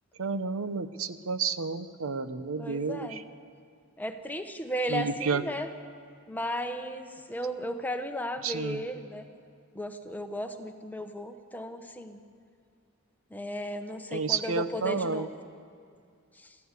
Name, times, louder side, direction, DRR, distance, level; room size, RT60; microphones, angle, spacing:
voice 1, 0.2-3.2 4.9-5.4 8.4-8.8 14.1-15.3, right 5 dB, 75° right, 12 dB, 0.9 m, -31 dB
voice 2, 2.6-3.2 4.0-5.7 6.3-9.3 9.7-12.2 13.3-15.3 16.4-16.6, equal, 10° left, 7 dB, 1.0 m, -35 dB
24.5 x 14.5 x 8.3 m, 2.2 s
head